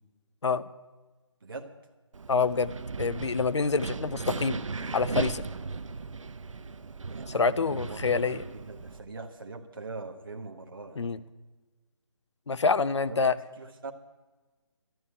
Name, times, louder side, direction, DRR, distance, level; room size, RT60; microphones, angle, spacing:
voice 1, 1.4-1.7 3.8-3.9 4.6-4.7 7.0-11.1 13.1-13.2 13.6-13.9, right 3 dB, 45° right, 1 dB, 1.3 m, -42 dB
Wind, 2.1-9.0, right 4 dB, 80° right, 0.8 m, -37 dB
voice 2, 2.3-2.7 3.0-4.7 4.9-5.4 7.3-8.4 11.0-11.2 12.5-13.3, left 4 dB, 65° left, 16 dB, 0.7 m, -26 dB
12.5 x 10.0 x 9.5 m, 1.3 s
hypercardioid pair, 180°, 16 cm